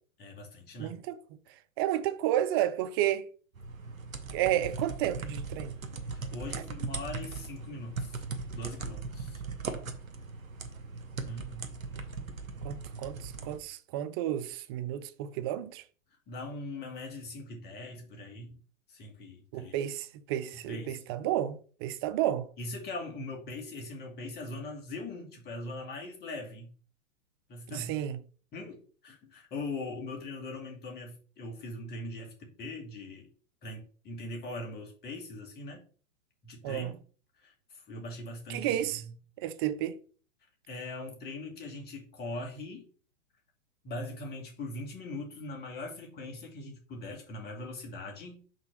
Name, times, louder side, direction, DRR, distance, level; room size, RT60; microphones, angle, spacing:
voice 1, 0.2-1.0 6.1-8.2 8.5-9.4 11.2-11.7 16.3-18.6 18.9-19.7 20.5-21.0 22.6-26.7 27.5-27.9 28.5-33.3 33.6-35.8 36.4-37.0 37.4-39.1 40.7-42.9 43.8-48.4, left 2 dB, 25° left, 2.4 m, -41 dB
voice 2, 0.8-1.2 1.8-3.3 4.3-5.8 12.6-15.8 19.5-22.5 27.7-28.2 36.6-36.9 38.5-39.0 39.4-40.0, right 12 dB, 20° right, 0.3 m, -31 dB
sound 1, 3.5-13.6, right 4 dB, 85° right, 1.4 m, -39 dB
6.3 x 4.0 x 6.2 m
hypercardioid pair, 115°, 40 cm